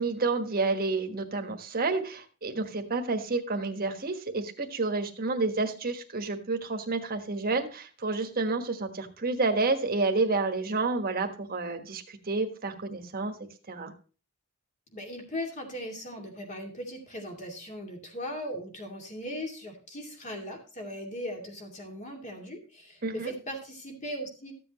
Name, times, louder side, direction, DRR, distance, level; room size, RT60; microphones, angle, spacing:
voice 1, 0.0-13.3 13.7-13.9 23.0-23.3, right 3 dB, 45° right, 6 dB, 1.4 m, -29 dB
voice 2, 14.9-24.5, equal, 35° left, 1 dB, 2.5 m, -38 dB
14.0 x 7.7 x 3.0 m, 0.37 s
head